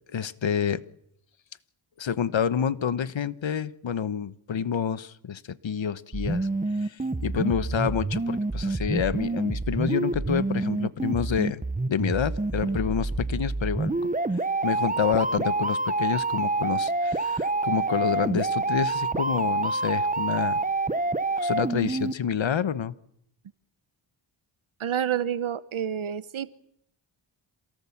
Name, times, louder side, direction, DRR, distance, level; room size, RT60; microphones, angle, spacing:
voice 1, 0.1-0.8 2.0-6.5 6.8-11.6 11.9-14.0 14.6-20.6 21.4-22.9, left 7 dB, 65° left, 15 dB, 1.2 m, -28 dB
sound 1, 6.1-22.1, right 2 dB, 15° right, 1.1 m, -27 dB
voice 2, 24.8-26.5, right 9 dB, 75° right, 15 dB, 1.0 m, -28 dB
27.5 x 18.0 x 7.2 m, 0.73 s
cardioid pair, 50°, 49 cm